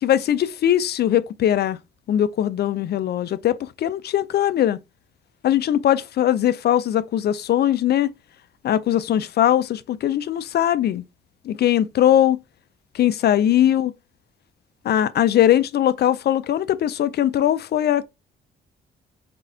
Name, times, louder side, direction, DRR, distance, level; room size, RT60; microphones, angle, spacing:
voice 1, 0.0-1.8 2.1-4.8 5.4-8.1 8.6-11.0 11.4-12.4 12.9-13.9 14.8-18.0, left 11 dB, 55° left, 0.4 m, -20 dB
4.0 x 3.7 x 2.7 m
cardioid pair, 90°, 20 cm